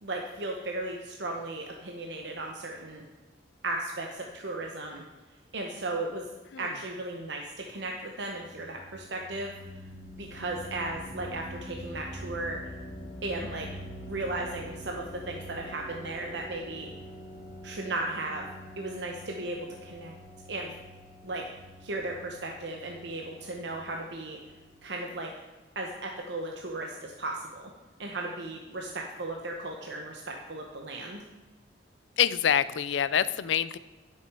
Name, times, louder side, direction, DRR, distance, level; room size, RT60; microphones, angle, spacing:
voice 1, 0.0-3.0 3.6-5.0 5.5-6.3 6.6-9.5 10.2-12.6 13.2-13.7 14.1-16.9 17.6-18.5 18.8-20.1 20.5-20.7 21.2-21.4 21.8-24.4 24.8-25.3 25.7-27.5 28.0-31.2, right 2 dB, 65° right, 1 dB, 0.9 m, -35 dB
sound 1, 8.2-24.9, equal, 20° right, 1.8 m, -45 dB
voice 2, 32.2-33.8, left 9 dB, 75° left, 16 dB, 0.4 m, -26 dB
11.5 x 6.7 x 4.8 m, 1.2 s
head